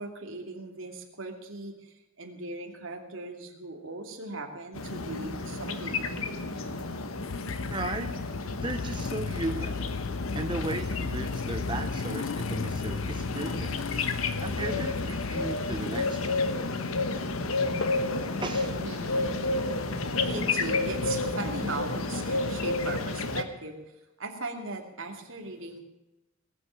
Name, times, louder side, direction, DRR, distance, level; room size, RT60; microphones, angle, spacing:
voice 1, 0.0-6.7 14.5-14.8 18.8-19.5 20.1-23.8 24.2-25.8, right 2 dB, 65° right, 3 dB, 2.8 m, -39 dB
sound 1, 4.7-23.4, left 3 dB, 80° left, 1.3 m, -31 dB
Motorcycle / Engine starting, 7.2-16.1, left 5 dB, 65° left, 0.4 m, -36 dB
voice 2, 7.7-8.1 8.6-9.8 10.3-13.8 14.4-16.5 18.4-18.8, right 2 dB, 25° right, 5 dB, 0.9 m, -35 dB
20.5 x 8.0 x 8.7 m, 0.97 s
head